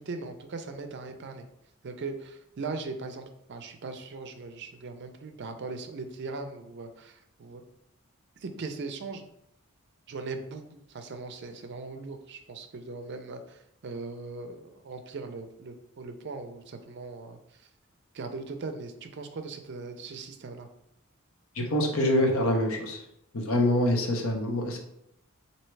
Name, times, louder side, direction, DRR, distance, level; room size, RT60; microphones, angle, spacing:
voice 1, 0.0-1.5 1.8-7.6 8.4-9.2 10.1-17.7 18.1-20.7, right 3 dB, 50° right, 7 dB, 0.4 m, -39 dB
voice 2, 21.5-23.0 23.3-24.8, left 1 dB, 70° left, 2 dB, 0.8 m, -25 dB
4.4 x 2.7 x 3.1 m, 0.77 s
head